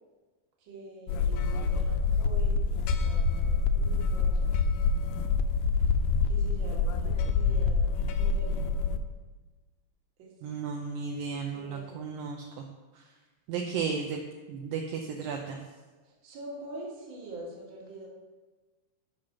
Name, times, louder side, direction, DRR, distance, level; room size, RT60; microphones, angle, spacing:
voice 1, 0.6-4.6 6.2-8.8 10.2-10.3 11.5-12.2 16.0-18.1, right 2 dB, 45° right, -3 dB, 1.7 m, -45 dB
sound 1, 1.1-9.0, left 4 dB, 85° left, 2.0 m, -26 dB
voice 2, 10.4-12.7 13.0-13.1 13.5-14.2 14.5-15.6, right 5 dB, 80° right, 2 dB, 2.1 m, -34 dB
7.6 x 6.0 x 5.7 m, 1.3 s
omnidirectional pair, 4.5 m